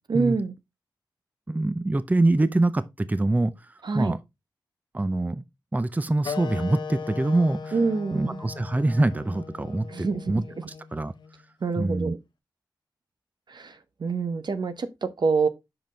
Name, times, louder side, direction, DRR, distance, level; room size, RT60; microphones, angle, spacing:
voice 1, 0.1-0.6 3.8-4.1 7.7-8.4 9.9-10.7 11.6-12.2 13.5-15.5, right 4 dB, 65° right, 0.8 m, -26 dB
voice 2, 1.5-3.5 3.9-4.2 4.9-5.4 5.7-7.7 8.1-10.4 10.9-11.1 11.8-12.2, right 2 dB, 20° right, 0.5 m, -24 dB
sound 1, 6.2-11.4, left 6 dB, 65° left, 0.6 m, -38 dB
6.0 x 5.3 x 3.8 m
cardioid pair, 50°, 8 cm